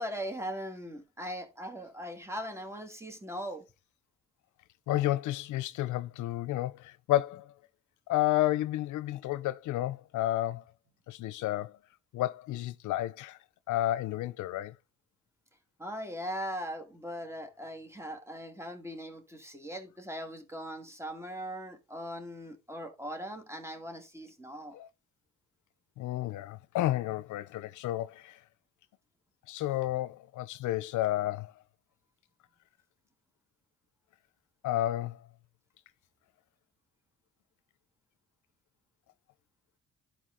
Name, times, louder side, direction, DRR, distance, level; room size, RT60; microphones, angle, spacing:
voice 1, 0.0-3.7 15.8-24.8, equal, 10° right, 2.1 m, -40 dB
voice 2, 4.9-7.5 8.1-10.6 11.1-11.8 12.1-13.4 13.7-14.7 24.7-24.9 26.0-28.4 29.5-31.5 34.6-35.2, left 14 dB, 80° left, 0.6 m, -31 dB
11.5 x 4.7 x 3.7 m
cardioid pair, 90°, 30 cm